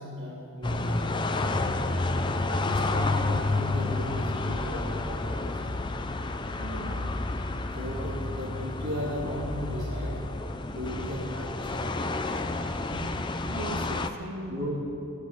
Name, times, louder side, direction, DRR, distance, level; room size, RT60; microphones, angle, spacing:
voice 1, 0.0-1.6 2.5-5.8 7.7-10.2 10.7-13.1 14.5-14.8, equal, 55° right, -10 dB, 3.1 m, -37 dB
sound 1, 0.6-14.1, left 2 dB, 20° left, 0.5 m, -30 dB
voice 2, 2.4-2.8 6.6-7.1 13.5-14.6, right 1 dB, 70° right, 4 dB, 1.2 m, -39 dB
18.5 x 7.5 x 8.2 m, 2.7 s
head